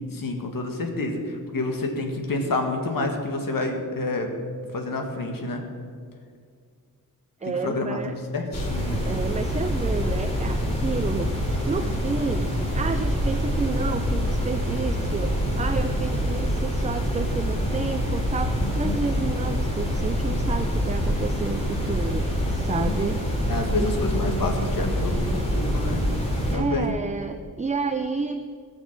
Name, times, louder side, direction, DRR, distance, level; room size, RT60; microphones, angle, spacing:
voice 1, 0.1-4.3 4.7-5.6 7.4-8.0 8.3-9.0 18.6-19.0 22.6-23.0 23.5-26.0 26.5-26.9, left 2 dB, 70° left, 3 dB, 1.8 m, -28 dB
voice 2, 7.4-8.2 9.0-11.3 11.6-23.9 26.5-28.6, right 4 dB, 20° right, 8 dB, 0.4 m, -30 dB
sound 1, 8.5-26.6, equal, 20° left, 2.9 m, -26 dB
17.5 x 6.3 x 7.4 m, 2.1 s
wide cardioid pair, 170°, 34 cm